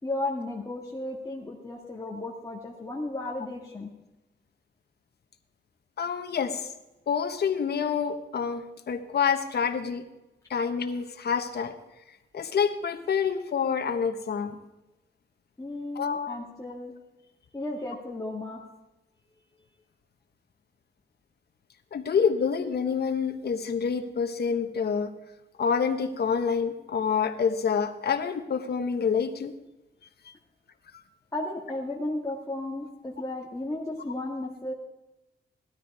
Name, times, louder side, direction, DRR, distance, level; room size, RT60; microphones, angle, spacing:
voice 1, 0.0-3.9 15.6-16.9 17.5-18.6 31.3-34.7, left 2 dB, 20° left, -3 dB, 1.8 m, -34 dB
voice 2, 6.0-6.6 7.1-10.0 10.5-11.7 12.3-14.6 16.0-16.4 21.9-25.1 25.6-29.5, left 6 dB, 60° left, 7 dB, 1.2 m, -27 dB
17.0 x 12.5 x 4.8 m, 0.99 s
wide cardioid pair, 140°, 18 cm